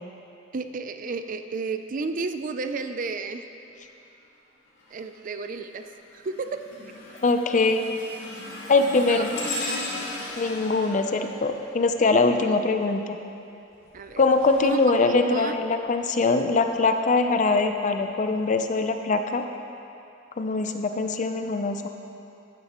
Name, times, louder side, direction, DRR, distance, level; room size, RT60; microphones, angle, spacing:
voice 1, 0.5-3.4 4.9-5.9 6.1-6.6 9.1-9.3 13.9-14.2 14.6-15.6, right 4 dB, 45° right, 8 dB, 0.4 m, -32 dB
sound 1, 4.8-5.2 5.7-12.5 13.7-15.9 16.6-16.8 17.7-17.8, left 2 dB, 75° left, 2.0 m, -37 dB
voice 2, 7.2-7.9 8.7-9.3 10.4-13.2 14.2-19.4 20.4-21.9, left 3 dB, 40° left, 6 dB, 0.5 m, -22 dB
13.5 x 9.7 x 3.0 m, 2.7 s
head